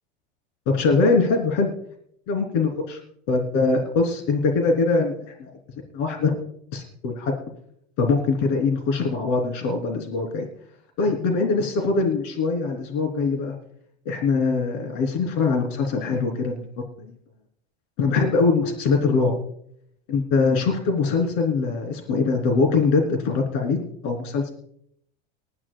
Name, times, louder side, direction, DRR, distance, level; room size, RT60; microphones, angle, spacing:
voice 1, 0.7-1.7 2.3-3.0 3.3-5.5 5.9-6.3 6.7-7.3 8.0-10.5 11.0-13.6 14.1-16.6 18.0-19.3 20.1-24.5, left 4 dB, 70° left, 2 dB, 3.5 m, -22 dB
20.0 x 13.5 x 2.3 m, 0.70 s
supercardioid pair, 105°, 31 cm